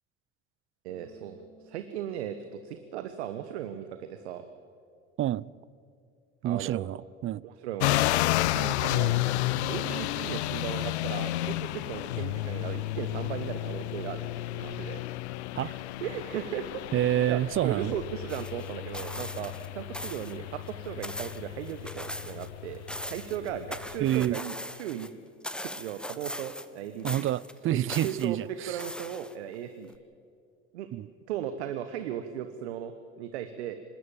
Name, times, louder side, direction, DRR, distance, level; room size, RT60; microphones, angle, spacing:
voice 1, 0.8-4.4 6.4-6.9 7.4-8.0 8.5-9.2 9.6-14.3 14.5-15.0 15.3-22.8 23.1-25.1 25.6-27.3 27.7-29.9 30.7-30.9 31.3-33.8, right 10 dB, 80° right, 1.1 m, -37 dB
Bass guitar, 0.9-4.0, right 1 dB, 25° left, 4.7 m, -58 dB
voice 2, 5.2-5.5 6.4-7.4 15.5-15.7 16.9-17.9 24.0-24.4 27.0-28.8 30.9-31.1, right 12 dB, 40° right, 0.5 m, -28 dB
sound 1, 7.8-24.3, left 16 dB, 80° left, 0.6 m, -32 dB
sound 2, 18.3-19.7 19.9-20.4 20.7-22.5 22.7-25.1 25.4-26.8 27.0-28.3 28.8-29.5 29.9-30.0, left 1 dB, 5° left, 1.2 m, -40 dB
25.5 x 12.5 x 8.9 m
hypercardioid pair, 65°, 33 cm